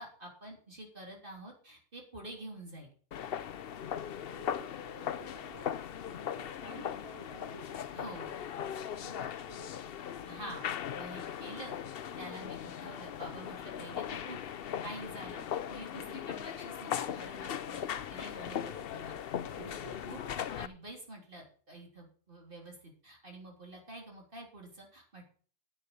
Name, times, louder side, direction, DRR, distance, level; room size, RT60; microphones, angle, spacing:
voice 1, 0.0-2.9 7.9-8.4 10.3-10.6 10.9-11.8 12.2-14.4 14.8-19.1 19.6-20.2 20.6-25.2, right 1 dB, 50° right, 0 dB, 3.6 m, -48 dB
sound 1, 3.1-20.7, left 9 dB, 60° left, 0.8 m, -39 dB
voice 2, 4.4-5.7 6.2-7.8 9.0-9.7 15.4-15.5 16.0-16.6 19.4-20.0, right 1 dB, 30° right, -1 dB, 3.2 m, -52 dB
10.0 x 8.2 x 5.5 m, 0.43 s
omnidirectional pair, 1.2 m